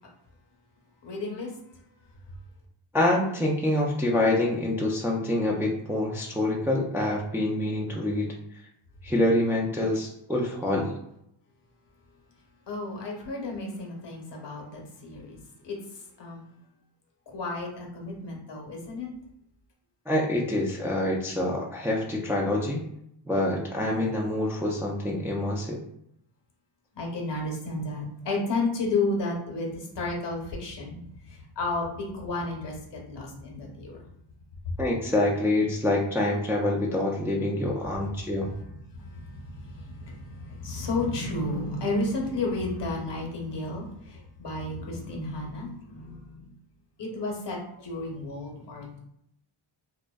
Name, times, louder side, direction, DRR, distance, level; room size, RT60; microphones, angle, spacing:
voice 1, 1.0-1.5 12.7-15.4 15.6-15.8 16.2-16.4 17.3-19.1 26.9-31.0 31.3-34.0 38.9-46.5 47.0-49.0, left 2 dB, 65° left, -1 dB, 0.8 m, -32 dB
voice 2, 2.9-8.3 9.0-10.9 20.1-22.8 23.2-25.8 34.8-38.5, left 1 dB, 5° right, -3 dB, 0.3 m, -26 dB
2.5 x 2.2 x 2.2 m, 0.75 s
wide cardioid pair, 90°, 47 cm